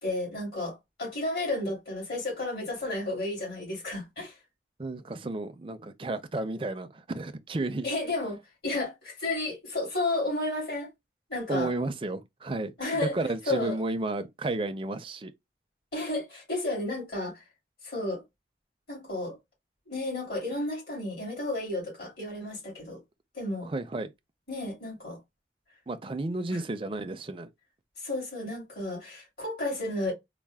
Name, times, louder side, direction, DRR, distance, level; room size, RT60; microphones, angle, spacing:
voice 1, 0.0-4.4 7.8-10.9 11.3-11.7 12.8-13.2 13.5-13.8 15.9-17.4 17.8-18.2 18.9-19.4 19.9-23.0 23.3-23.7 24.5-25.2 26.5-26.6 28.0-30.1, left 2 dB, 65° left, 2.5 m, -32 dB
voice 2, 4.8-7.9 11.5-15.3 23.6-24.1 25.9-27.5, right 2 dB, 30° right, 0.4 m, -32 dB
4.1 x 2.1 x 3.4 m
head